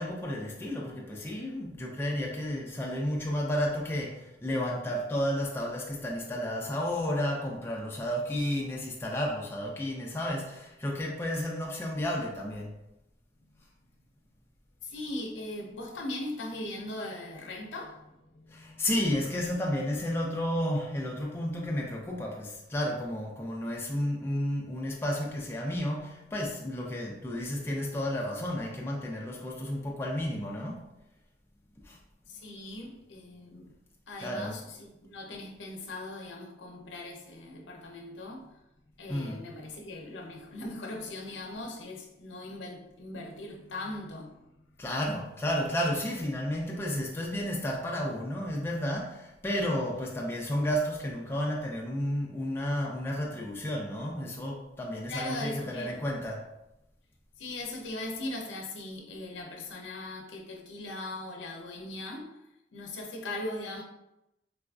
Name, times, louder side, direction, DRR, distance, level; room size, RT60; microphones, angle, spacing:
voice 1, 0.0-12.7 18.5-30.9 31.8-32.0 34.2-34.5 39.1-39.5 44.8-56.5, equal, 10° left, 0.3 m, -32 dB
voice 2, 14.8-18.9 32.3-33.7 34.1-38.5 39.0-44.4 55.1-56.0 57.4-62.3 62.7-63.8, left 2 dB, 80° left, 0.6 m, -39 dB
3.8 x 2.4 x 2.2 m
head